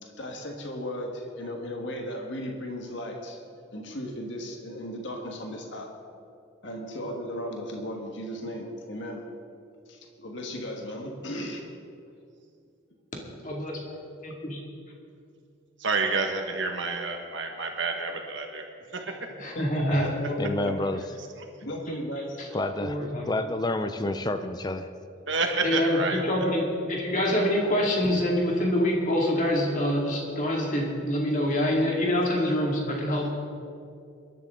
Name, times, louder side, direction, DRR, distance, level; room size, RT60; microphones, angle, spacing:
voice 1, 0.0-3.4 3.7-5.9 6.6-9.2 9.9-11.7 19.5-20.8 21.6-22.4, equal, 65° left, 1 dB, 1.6 m, -35 dB
voice 2, 13.4-13.8 14.2-14.6 19.4-20.1 22.4-22.5 22.8-23.2 25.6-33.3, left 1 dB, 40° left, -1 dB, 2.4 m, -26 dB
voice 3, 15.8-18.6 18.9-19.2 25.3-26.2, right 3 dB, 65° right, 3 dB, 1.6 m, -28 dB
voice 4, 20.4-21.0 22.5-23.0 23.3-24.9, left 1 dB, 20° left, 9 dB, 0.5 m, -29 dB
22.0 x 11.5 x 3.8 m, 2.5 s
head